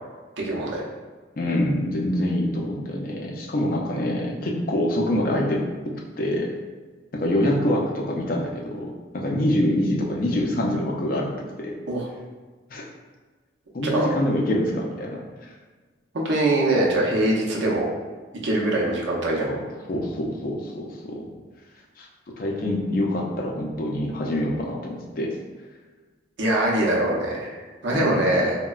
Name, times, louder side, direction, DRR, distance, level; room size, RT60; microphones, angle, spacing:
voice 1, 0.4-0.8 11.9-12.1 13.9-14.1 16.1-17.9 18.4-19.5 26.4-27.5 27.8-28.6, right 1 dB, 70° right, -3 dB, 0.6 m, -22 dB
voice 2, 1.4-5.7 6.2-6.5 7.1-8.9 9.1-11.3 11.6-11.8 12.7-12.8 13.7-15.2 19.4-21.3 22.0-22.1 22.4-25.3 27.9-28.2, left 1 dB, 45° left, -1 dB, 0.4 m, -25 dB
3.8 x 2.1 x 2.3 m, 1.4 s
head